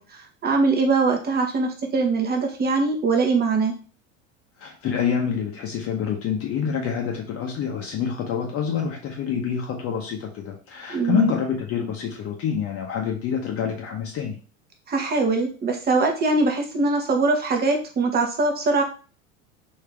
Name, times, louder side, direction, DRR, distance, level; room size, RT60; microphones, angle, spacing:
voice 1, 0.0-3.7 10.9-11.3 14.9-18.8, right 3 dB, 25° right, 3 dB, 1.0 m, -22 dB
voice 2, 4.6-14.4, left 7 dB, 35° left, 1 dB, 0.8 m, -27 dB
3.5 x 2.8 x 3.4 m, 0.37 s
hypercardioid pair, 95°, 39 cm